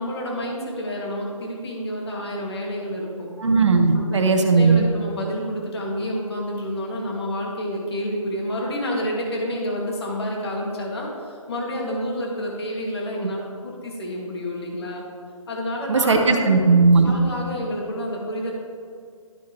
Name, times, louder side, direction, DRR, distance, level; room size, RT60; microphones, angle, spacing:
voice 1, 0.0-3.3 3.9-4.2 4.5-15.0 15.5-16.5 17.1-18.5, equal, 50° left, -1 dB, 2.1 m, -29 dB
voice 2, 3.4-4.9 15.9-17.1, right 4 dB, 55° right, 5 dB, 1.1 m, -17 dB
12.5 x 5.9 x 3.0 m, 2.3 s
figure-of-eight pair, 160°, 18 cm